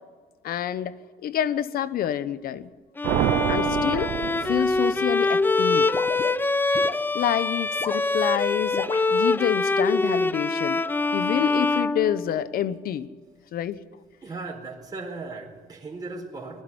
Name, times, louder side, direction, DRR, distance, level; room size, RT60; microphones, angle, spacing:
voice 1, 0.4-0.9 1.2-2.7 3.5-4.1 4.4-5.9 7.1-10.8 11.1-13.1 13.5-13.8, left 10 dB, 60° left, 15 dB, 1.0 m, -27 dB
Bowed string instrument, 3.0-12.7, left 3 dB, 10° left, 0.5 m, -24 dB
sound 1, 3.0-5.3, right 15 dB, 80° right, 0.6 m, -27 dB
sound 2, 5.9-7.0 7.7-8.0 8.7-9.1, left 4 dB, 30° left, 1.3 m, -34 dB
voice 2, 14.2-16.6, right 3 dB, 25° right, -1 dB, 4.4 m, -37 dB
21.5 x 12.5 x 9.7 m, 1.4 s
cardioid pair, 110°, 17 cm